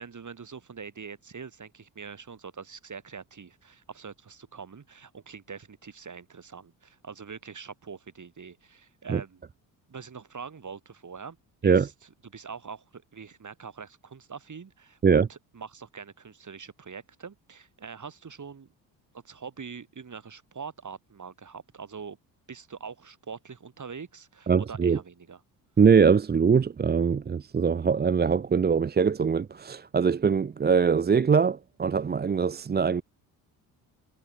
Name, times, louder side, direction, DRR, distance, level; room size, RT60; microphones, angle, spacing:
voice 1, 0.0-9.4 9.9-11.4 11.6-18.7 19.1-22.2 22.5-25.4, right 6 dB, 35° right, 7.0 m, -43 dB
voice 2, 24.5-25.0 25.8-33.0, right 6 dB, 20° right, 0.7 m, -22 dB
hypercardioid pair, 50°, 49 cm